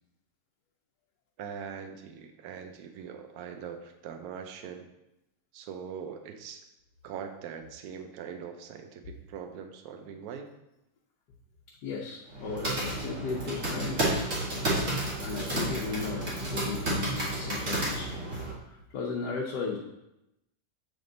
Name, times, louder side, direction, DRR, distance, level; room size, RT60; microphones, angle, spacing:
voice 1, 1.4-4.8 5.5-6.7 7.0-10.5 14.7-14.9, right 7 dB, 70° right, 6 dB, 1.1 m, -42 dB
voice 2, 11.8-14.2 15.2-18.3 18.7-19.8, left 4 dB, 80° left, -2 dB, 1.3 m, -36 dB
sound 1, 12.3-18.5, right 1 dB, 50° right, 1.9 m, -31 dB
7.7 x 3.5 x 3.8 m, 0.88 s
omnidirectional pair, 1.8 m